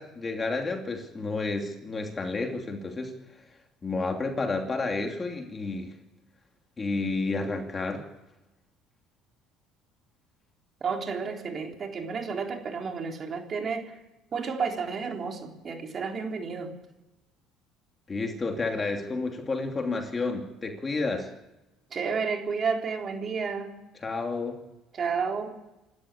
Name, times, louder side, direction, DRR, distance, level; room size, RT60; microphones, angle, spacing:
voice 1, 0.0-3.1 3.8-5.9 6.8-8.0 18.1-21.3 24.0-24.6, left 3 dB, 25° left, 4 dB, 2.8 m, -30 dB
voice 2, 10.8-13.9 14.3-16.7 21.9-23.7 24.9-25.6, right 5 dB, 35° right, 2 dB, 3.8 m, -31 dB
26.5 x 13.5 x 8.5 m, 0.99 s
cardioid pair, 125°, 0 cm